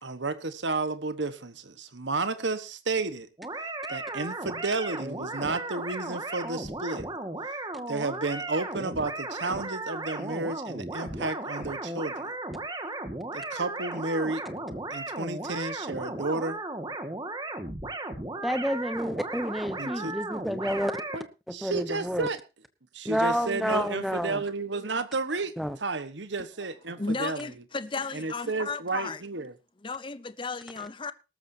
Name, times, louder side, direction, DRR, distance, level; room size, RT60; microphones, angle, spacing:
voice 1, 0.0-3.3 3.9-7.1 7.9-12.3 13.3-14.4 14.9-16.6 19.8-20.1 21.1-21.2 21.5-22.4 22.9-25.5 25.8-27.4 28.1-29.5, right 3 dB, 80° right, 1.3 m, -32 dB
sound 1, 3.4-21.2, right 2 dB, 20° right, 1.8 m, -36 dB
voice 2, 18.4-20.9 21.5-22.3 23.0-24.4 25.6-25.8, equal, ahead, 1.0 m, -29 dB
voice 3, 27.0-29.2 29.8-31.1, left 4 dB, 25° left, 0.6 m, -34 dB
19.0 x 13.5 x 2.8 m
head